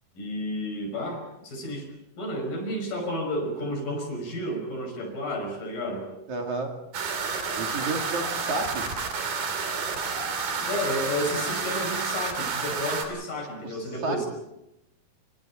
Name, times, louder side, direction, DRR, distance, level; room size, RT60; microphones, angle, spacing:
voice 1, 0.2-1.9 2.2-6.1 10.6-14.3, left 1 dB, 65° left, 4 dB, 7.4 m, -31 dB
voice 2, 6.3-6.8 7.6-9.1 13.6-14.2, right 3 dB, 55° right, 2 dB, 3.6 m, -32 dB
sound 1, 6.9-13.0, right 5 dB, 70° right, 4.8 m, -30 dB
30.0 x 25.5 x 4.4 m, 0.85 s
omnidirectional pair, 4.2 m